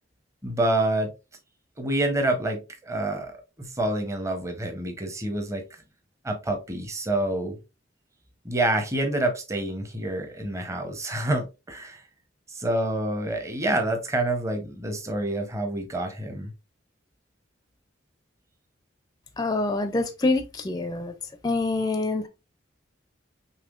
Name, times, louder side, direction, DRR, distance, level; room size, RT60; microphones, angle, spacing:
voice 1, 0.4-1.1 1.8-5.6 6.2-7.6 8.4-12.0 12.5-16.5, right 1 dB, 15° right, 0.7 m, -27 dB
voice 2, 19.4-21.1 21.4-22.3, left 2 dB, 20° left, 0.4 m, -26 dB
5.5 x 3.2 x 2.4 m
head